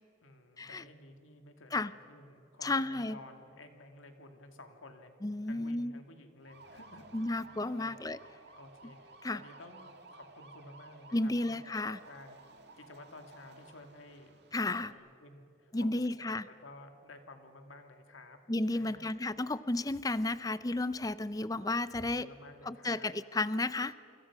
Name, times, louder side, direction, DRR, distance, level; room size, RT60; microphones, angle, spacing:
voice 1, 0.2-5.1 5.4-7.5 7.8-8.0 8.6-11.6 12.0-14.4 14.6-18.4 18.7-19.2 21.9-23.1, left 2 dB, 85° left, 5 dB, 2.5 m, -53 dB
voice 2, 2.6-3.2 5.2-6.0 7.1-8.2 9.2-9.4 11.1-12.0 14.5-14.9 15.7-16.5 18.5-22.3 22.7-23.9, left 2 dB, 20° left, 15 dB, 0.5 m, -32 dB
sound 1, 6.4-14.9, right 3 dB, 55° right, 2.2 m, -55 dB
28.5 x 24.5 x 6.2 m, 2.6 s
head